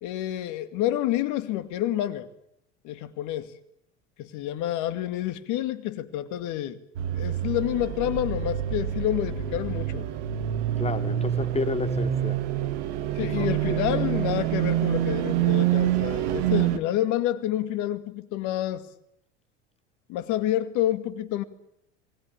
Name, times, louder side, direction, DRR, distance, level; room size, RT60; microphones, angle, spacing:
voice 1, 0.0-2.3 2.8-3.5 4.2-6.8 7.1-10.1 13.1-18.9 20.1-21.4, left 13 dB, 55° left, 2.4 m, -28 dB
sound 1, 7.0-16.8, right 11 dB, 70° right, 2.1 m, -26 dB
voice 2, 10.8-12.4 13.2-13.7, left 4 dB, 15° left, 2.6 m, -31 dB
28.5 x 20.5 x 8.8 m
hypercardioid pair, 80°, 36 cm